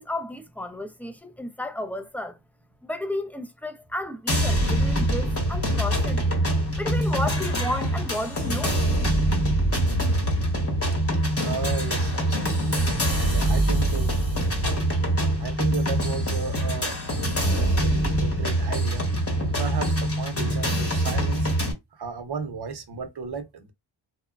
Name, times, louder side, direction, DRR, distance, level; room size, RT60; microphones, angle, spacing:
voice 1, 0.0-2.4 2.8-6.2 6.7-8.8, left 1 dB, 5° left, 0.4 m, -32 dB
sound 1, 4.3-21.7, right 1 dB, 30° left, 0.9 m, -24 dB
voice 2, 11.4-12.8 13.1-14.1 15.4-17.2 17.5-19.1 19.4-21.5 21.9-23.7, right 5 dB, 60° right, 0.7 m, -34 dB
3.0 x 2.2 x 2.2 m
wide cardioid pair, 80°, 45 cm